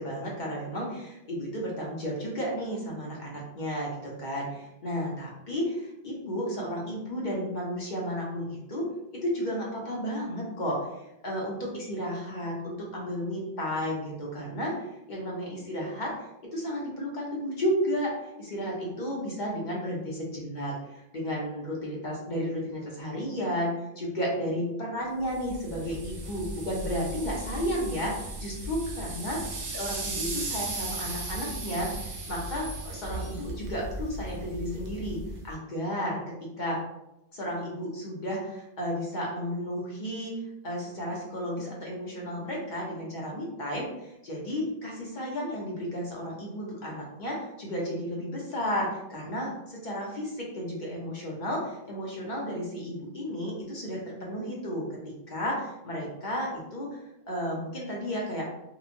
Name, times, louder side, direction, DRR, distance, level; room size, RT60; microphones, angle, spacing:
voice 1, 0.0-10.9 11.2-29.4 29.7-36.8 37.3-40.4 40.6-55.0 55.3-57.0 57.3-58.4, equal, 50° left, -3 dB, 0.9 m, -33 dB
sound 1, 25.3-35.5, right 2 dB, 85° right, 0.9 m, -36 dB
2.8 x 2.3 x 2.5 m, 0.86 s
omnidirectional pair, 1.1 m